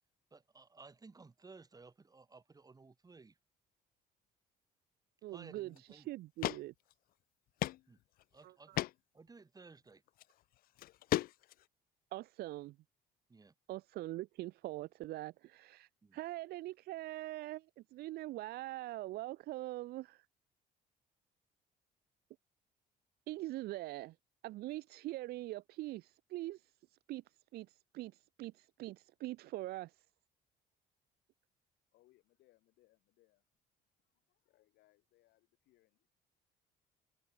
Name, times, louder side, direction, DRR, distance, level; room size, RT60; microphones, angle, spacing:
voice 1, 0.3-3.4 5.3-6.1 7.9-8.0 8.3-8.8 9.1-10.0 13.3-13.5 16.0-16.2, right 4 dB, 20° right, 3.6 m, -57 dB
voice 2, 5.2-6.7 8.4-8.8 12.1-12.8 13.7-20.3 23.3-24.2 24.4-27.2 27.5-30.1, right 17 dB, 70° right, 0.5 m, -43 dB
sound 1, 5.8-5.9 6.4-6.6 6.9-7.0 7.6-7.8 8.2-8.3 8.7-8.9 10.1-10.2 10.8-11.6, left 16 dB, 60° left, 0.4 m, -34 dB
voice 3, 31.9-33.4 34.0-36.1, left 18 dB, 85° left, 7.0 m, -71 dB
cardioid pair, 110°, 17 cm